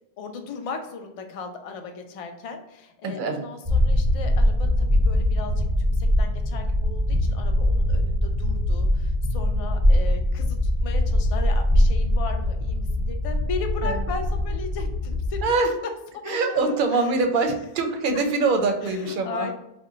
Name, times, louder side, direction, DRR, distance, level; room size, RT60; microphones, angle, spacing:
voice 1, 0.2-15.5 16.1-17.0 18.8-19.5, left 5 dB, 60° left, 5 dB, 0.3 m, -36 dB
voice 2, 3.0-3.4 13.8-14.1 15.4-15.7 16.3-19.5, right 3 dB, 60° right, 5 dB, 0.6 m, -24 dB
sound 1, 3.7-15.4, left 1 dB, 20° right, 0.7 m, -22 dB
2.9 x 2.2 x 3.7 m, 0.86 s
omnidirectional pair, 1.1 m